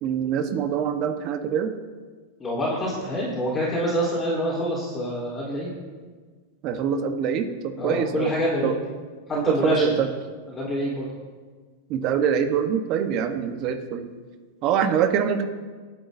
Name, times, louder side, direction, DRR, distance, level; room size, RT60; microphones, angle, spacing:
voice 1, 0.0-1.7 6.6-8.3 8.6-8.7 9.3-10.1 11.9-14.0 14.6-15.4, right 8 dB, 45° right, 7 dB, 1.1 m, -24 dB
voice 2, 2.4-5.7 7.8-8.7 9.3-9.9 10.5-11.1, equal, 20° left, -6 dB, 3.9 m, -26 dB
24.0 x 9.2 x 2.7 m, 1.5 s
supercardioid pair, 135°, 0 cm